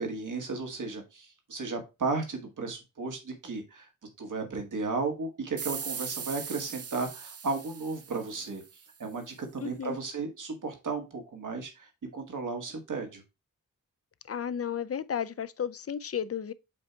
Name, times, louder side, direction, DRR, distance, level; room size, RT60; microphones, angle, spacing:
voice 1, 0.0-3.9 4.2-8.6 9.0-13.2, right 3 dB, 70° right, 1.8 m, -34 dB
sound 1, 5.6-8.9, right 6 dB, 45° right, 0.6 m, -39 dB
voice 2, 9.6-10.0 14.2-16.5, left 8 dB, 45° left, 0.5 m, -33 dB
7.6 x 2.7 x 4.5 m
wide cardioid pair, 70°, 33 cm